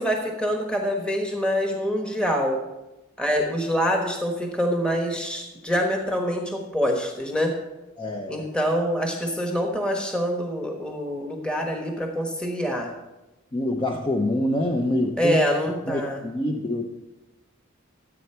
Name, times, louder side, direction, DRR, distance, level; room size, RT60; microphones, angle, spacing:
voice 1, 0.0-2.6 3.2-7.5 8.3-12.9 15.2-16.2, equal, 5° left, 1 dB, 1.2 m, -25 dB
voice 2, 8.0-8.5 13.5-15.4 15.9-16.9, left 1 dB, 25° left, 3 dB, 0.7 m, -26 dB
13.5 x 8.2 x 4.4 m, 1.0 s
head